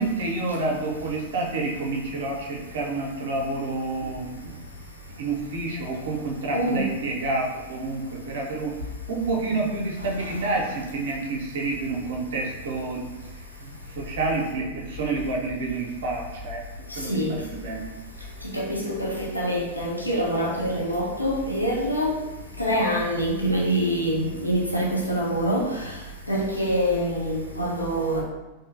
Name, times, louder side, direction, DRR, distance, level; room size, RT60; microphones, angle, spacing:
voice 1, 0.0-4.8 5.2-8.7 9.1-13.1 13.6-16.6 17.0-17.9, right 3 dB, 60° right, 0 dB, 0.4 m, -29 dB
voice 2, 6.5-6.9 17.1-17.3 18.5-22.2 22.6-25.7 26.3-28.2, equal, 85° left, -3 dB, 0.4 m, -25 dB
2.6 x 2.4 x 2.4 m, 1.0 s
figure-of-eight pair, 90°, 0 cm